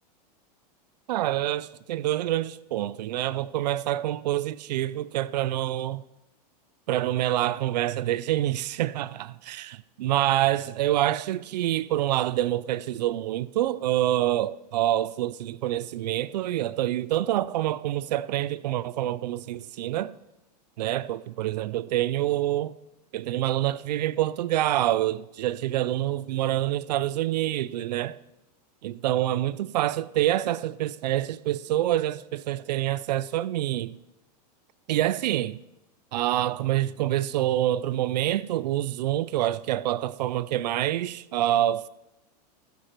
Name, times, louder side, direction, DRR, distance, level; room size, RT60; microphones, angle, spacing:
voice 1, 1.1-6.0 6.9-9.7 10.0-20.1 20.8-22.7 23.1-28.2 28.8-33.9 34.9-35.6 36.1-41.9, right 13 dB, 90° right, 0.5 m, -26 dB
15.5 x 8.7 x 4.6 m
supercardioid pair, 155°, 21 cm